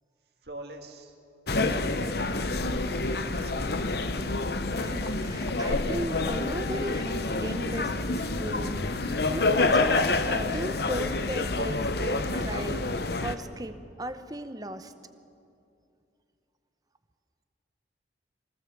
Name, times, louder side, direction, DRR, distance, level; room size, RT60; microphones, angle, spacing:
voice 1, 0.4-1.2 1.6-3.8, right 1 dB, 60° right, 3 dB, 2.1 m, -45 dB
sound 1, 1.5-13.3, left 2 dB, 55° left, 0.8 m, -28 dB
voice 2, 4.8-12.9 13.2-14.9, right 1 dB, 20° right, 10 dB, 0.8 m, -36 dB
24.0 x 18.0 x 7.2 m, 2.6 s
head